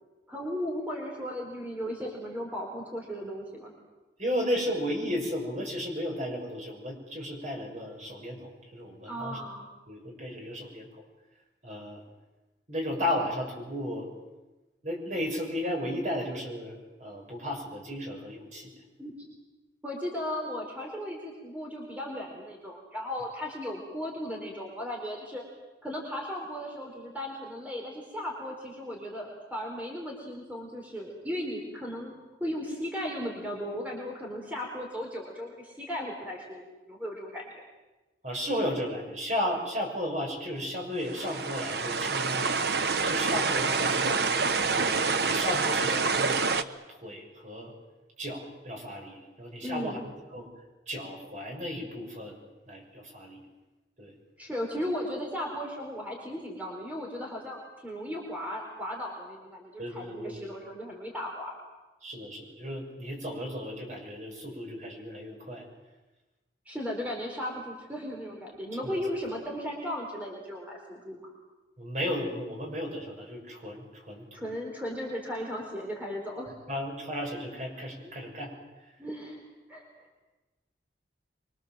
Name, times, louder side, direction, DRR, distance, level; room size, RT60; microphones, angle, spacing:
voice 1, 0.3-3.7 9.1-9.7 19.0-19.1 19.8-25.4 25.8-32.1 32.4-36.6 36.9-37.4 49.6-50.0 54.4-61.6 66.7-71.3 74.3-76.5 78.0-78.1 79.0-79.8, equal, 10° right, -1 dB, 4.3 m, -36 dB
voice 2, 4.2-9.4 9.9-10.9 11.6-12.0 12.7-14.1 14.8-18.7 38.2-42.7 43.0-44.1 44.6-46.6 46.9-47.7 48.2-50.0 50.3-50.5 50.9-52.4 52.7-53.4 54.0-54.1 59.8-60.4 62.0-65.7 68.8-69.0 71.8-74.5 76.7-78.5, equal, 40° right, 1 dB, 6.3 m, -34 dB
sound 1, 41.1-46.6, right 4 dB, 60° right, 1.1 m, -27 dB
25.0 x 24.5 x 7.6 m, 1.1 s
head